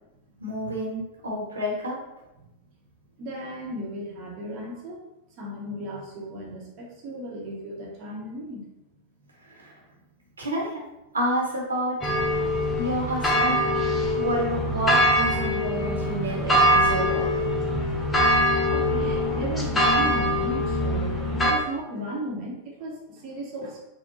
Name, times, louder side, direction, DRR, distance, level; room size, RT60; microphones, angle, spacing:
voice 1, 0.4-2.0 9.5-9.7 10.4-10.7 11.1-12.0 12.7-13.6 14.1-17.3, right 1 dB, 75° right, -3 dB, 1.0 m, -29 dB
voice 2, 3.2-5.1 5.4-8.7 9.2-9.3 18.7-23.8, right 1 dB, 40° right, -3 dB, 0.9 m, -35 dB
sound 1, 12.0-21.5, equal, 10° left, 0.6 m, -23 dB
4.3 x 2.2 x 4.0 m, 0.93 s
figure-of-eight pair, 90°, 0 cm